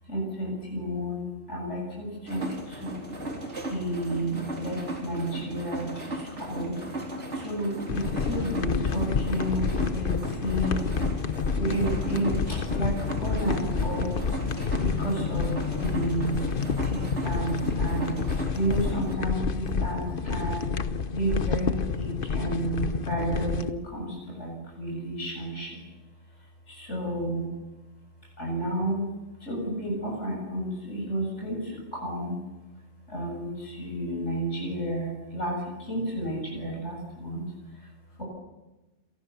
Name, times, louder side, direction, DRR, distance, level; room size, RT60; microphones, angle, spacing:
voice 1, 0.1-2.4 2.8-2.9 3.7-5.9 6.5-6.7 7.4-10.1 10.4-10.9 11.5-12.3 12.7-12.9 13.2-14.1 14.8-15.5 15.8-16.4 16.9-18.1 18.5-20.0 20.3-20.7 21.1-24.0 24.4-25.7 26.8-27.5 28.4-29.1 29.5-31.6 31.9-32.3 33.1-35.6 35.9-37.4 38.2-38.3, right 1 dB, 80° left, -2 dB, 8.0 m, -31 dB
sound 1, 2.3-19.1, right 1 dB, 75° right, 4.4 m, -36 dB
sound 2, 7.9-23.7, left 5 dB, 50° left, 1.2 m, -29 dB
28.5 x 23.5 x 7.0 m, 1.1 s
omnidirectional pair, 1.2 m